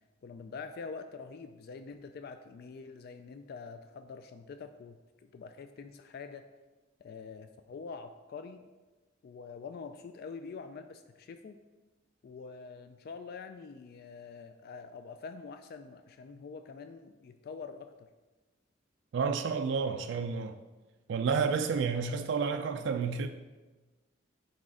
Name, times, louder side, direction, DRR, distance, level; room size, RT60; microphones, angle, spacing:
voice 1, 0.2-5.0 5.2-6.4 7.0-8.7 9.2-11.6 12.2-18.1, left 5 dB, 55° left, 0.3 m, -45 dB
voice 2, 19.1-20.6 21.1-23.3, right 5 dB, 65° right, 0.3 m, -30 dB
6.1 x 4.2 x 4.9 m
head